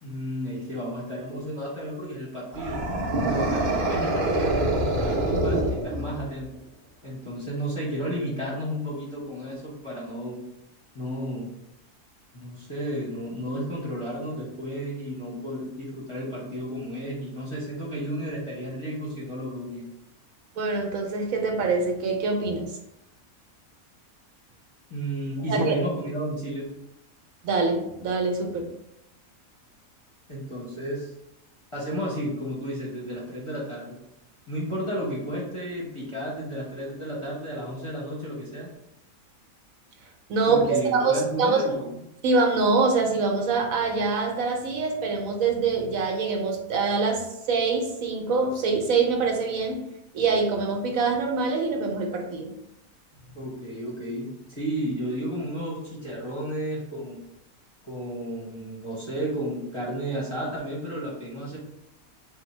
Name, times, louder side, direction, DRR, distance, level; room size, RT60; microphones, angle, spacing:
voice 1, 0.0-2.8 3.2-6.5 7.0-10.4 10.9-11.5 12.3-19.8 24.9-26.7 30.3-31.1 31.7-33.9 34.5-38.7 40.5-41.9 53.3-57.2 57.8-61.6, equal, 25° left, -6 dB, 0.7 m, -32 dB
sound 1, 2.5-6.4, right 2 dB, 55° right, 0.5 m, -25 dB
voice 2, 20.6-22.8 25.5-25.8 27.4-28.7 40.3-41.8 42.2-49.8 50.1-52.5, right 4 dB, 70° right, 2 dB, 1.0 m, -24 dB
3.6 x 2.1 x 4.2 m, 0.83 s
omnidirectional pair, 1.6 m